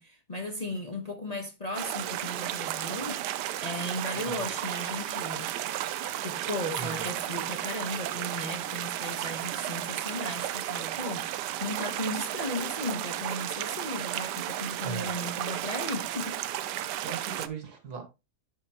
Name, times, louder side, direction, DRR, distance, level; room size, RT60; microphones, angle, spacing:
voice 1, 0.0-5.5 6.2-16.4, left 1 dB, 30° left, 1.0 m, -36 dB
sound 1, 1.8-17.5, right 13 dB, 85° right, 1.2 m, -33 dB
voice 2, 4.1-4.5 6.8-7.1 14.8-15.1 16.8-18.0, right 5 dB, 70° right, 2.0 m, -39 dB
10.5 x 5.3 x 2.9 m
omnidirectional pair, 1.8 m